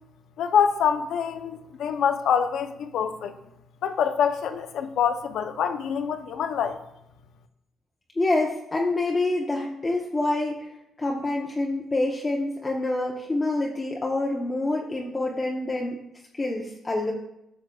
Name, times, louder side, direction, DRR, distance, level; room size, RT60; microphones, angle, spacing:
voice 1, 0.4-3.4 3.8-6.8, left 7 dB, 75° left, 0.5 m, -25 dB
voice 2, 8.2-10.7 11.0-16.0 16.3-17.1, left 2 dB, 25° left, 0.8 m, -26 dB
10.5 x 6.3 x 2.3 m
cardioid pair, 90°, 0 cm